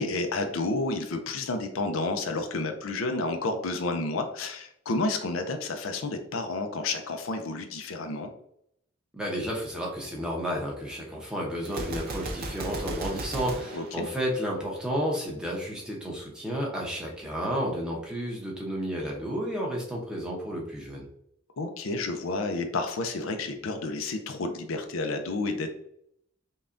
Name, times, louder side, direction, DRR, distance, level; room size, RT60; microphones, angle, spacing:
voice 1, 0.0-8.3 13.7-14.1 21.6-25.7, left 3 dB, 80° left, 6 dB, 0.5 m, -30 dB
voice 2, 9.1-21.1, equal, 5° right, -3 dB, 0.8 m, -32 dB
Gunshot gunfire, 11.6-14.8, right 2 dB, 45° right, 0.5 m, -36 dB
5.4 x 2.3 x 2.5 m, 0.73 s
head